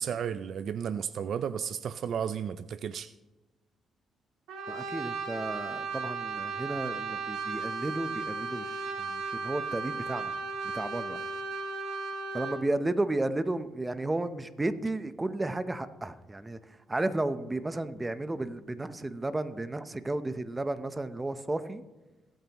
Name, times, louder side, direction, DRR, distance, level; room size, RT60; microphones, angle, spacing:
voice 1, 0.0-3.1, right 8 dB, 60° right, 13 dB, 0.4 m, -33 dB
Brass instrument, 4.5-12.7, right 4 dB, 80° right, 2.0 m, -35 dB
voice 2, 4.7-10.3 10.7-11.2 12.3-16.6 16.9-21.8, right 2 dB, 15° right, 12 dB, 0.8 m, -33 dB
23.5 x 9.1 x 3.0 m, 1.1 s
cardioid pair, 90°, 0 cm